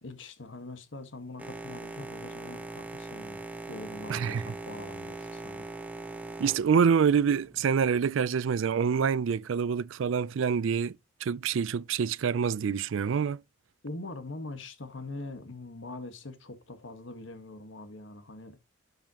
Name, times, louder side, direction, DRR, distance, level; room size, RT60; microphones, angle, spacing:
voice 1, 0.0-3.4 3.7-5.7 13.8-18.6, left 2 dB, 65° left, 1.4 m, -43 dB
Boat Water vehicle, 1.4-7.8, right 2 dB, 10° right, 0.9 m, -41 dB
voice 2, 4.1-4.4 6.4-11.0 11.2-13.4, right 6 dB, 70° right, 0.4 m, -26 dB
12.0 x 5.5 x 2.9 m
head